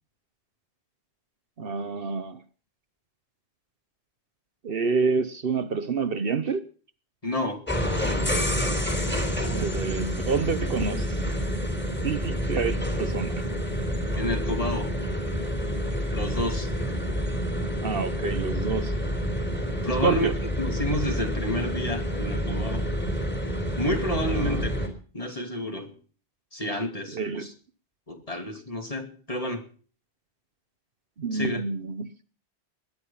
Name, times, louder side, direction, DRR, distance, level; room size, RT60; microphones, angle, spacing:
voice 1, 1.6-2.4 4.6-6.7 9.4-11.2 12.0-13.4 17.8-18.9 19.8-20.4 24.3-24.7 27.1-27.5 31.2-32.1, right 4 dB, 60° right, 1.2 m, -28 dB
voice 2, 7.2-7.6 14.2-14.9 16.1-16.7 19.8-22.8 23.8-24.7 25.1-25.9 26.5-27.5 28.1-29.6 31.3-31.6, left 1 dB, 30° left, 2.7 m, -30 dB
sound 1, 7.7-24.9, equal, 10° left, 3.7 m, -28 dB
20.5 x 11.0 x 5.6 m
omnidirectional pair, 1.1 m